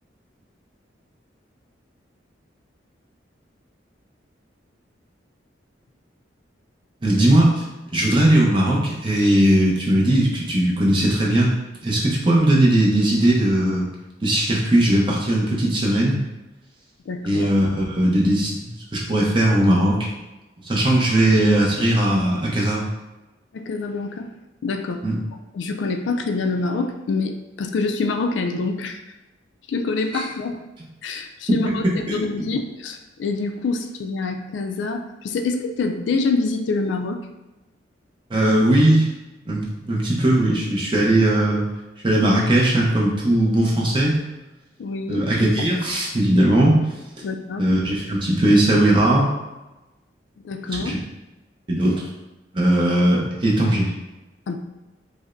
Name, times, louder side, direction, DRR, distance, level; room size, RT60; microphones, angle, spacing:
voice 1, 7.0-7.5 7.9-11.5 11.8-13.9 14.2-16.2 17.2-18.5 18.9-19.9 20.7-22.8 25.0-25.2 30.1-30.2 32.1-32.2 38.3-39.1 39.5-41.6 42.0-44.2 45.1-46.8 47.6-49.3 50.9-51.0 51.7-52.0 52.5-53.9, right 1 dB, 25° right, -4 dB, 0.7 m, -18 dB
voice 2, 17.1-17.5 23.5-24.3 24.6-25.0 25.3-29.0 29.7-30.6 31.0-31.8 32.1-37.2 44.8-45.3 47.2-47.7 50.4-51.0 54.5-54.6, left 3 dB, 80° left, 4 dB, 0.4 m, -26 dB
5.0 x 2.0 x 2.5 m, 1.0 s
head